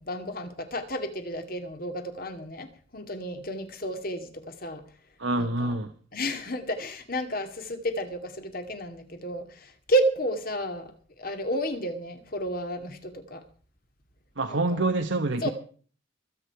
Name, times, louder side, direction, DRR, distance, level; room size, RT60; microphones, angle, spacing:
voice 1, 0.0-2.7 2.9-4.8 5.4-5.7 6.1-13.4 14.5-14.8 15.4-15.5, right 1 dB, 45° left, 2.3 m, -31 dB
voice 2, 5.2-5.9 14.4-15.5, right 2 dB, 70° right, 1.2 m, -26 dB
24.0 x 8.7 x 4.7 m
head